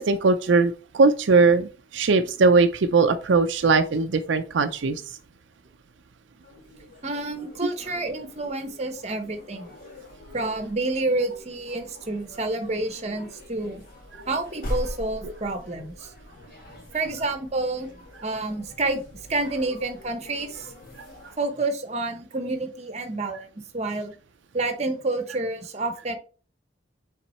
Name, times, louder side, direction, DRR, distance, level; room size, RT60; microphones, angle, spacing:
voice 1, 0.0-5.0 15.2-15.3, right 4 dB, 75° right, 7 dB, 0.5 m, -20 dB
sound 1, 6.4-21.3, equal, 50° left, 2.1 m, -42 dB
voice 2, 7.0-9.7 10.3-13.8 14.3-16.1 16.9-17.9 18.2-19.0 19.3-20.7 21.4-23.5 23.7-24.1 24.5-26.2, right 2 dB, 35° right, 8 dB, 0.9 m, -29 dB
5.9 x 3.7 x 4.2 m, 0.37 s
head